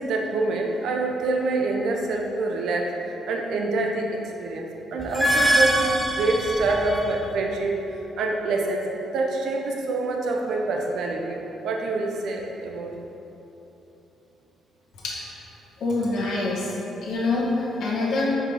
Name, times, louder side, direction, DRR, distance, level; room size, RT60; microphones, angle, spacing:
voice 1, 0.0-2.9 3.3-7.7 8.2-8.9 9.1-11.4 11.6-12.9, right 2 dB, 75° right, 1 dB, 0.8 m, -26 dB
sound 1, 5.0-7.3, right 1 dB, 5° right, 0.9 m, -23 dB
voice 2, 15.0-15.3 15.8-16.7 17.0-18.3, left 2 dB, 65° left, -5 dB, 1.5 m, -25 dB
5.3 x 5.0 x 5.6 m, 3.0 s
cardioid pair, 90°, 0 cm